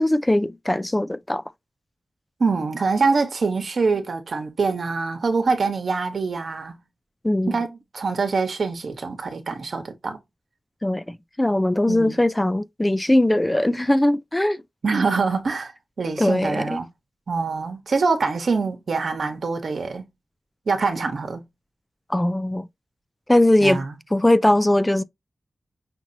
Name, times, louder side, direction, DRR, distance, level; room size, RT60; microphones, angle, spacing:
voice 1, 0.0-1.4 7.2-7.6 10.8-14.6 16.2-16.8 22.1-22.7 23.3-25.0, left 1 dB, 15° left, 0.3 m, -20 dB
voice 2, 2.4-6.8 7.5-10.2 11.9-12.2 14.8-15.7 16.0-16.9 17.3-20.0 20.7-21.5 23.6-24.0, right 4 dB, 75° right, 1.1 m, -24 dB
5.9 x 2.8 x 2.8 m
wide cardioid pair, 85°, 0 cm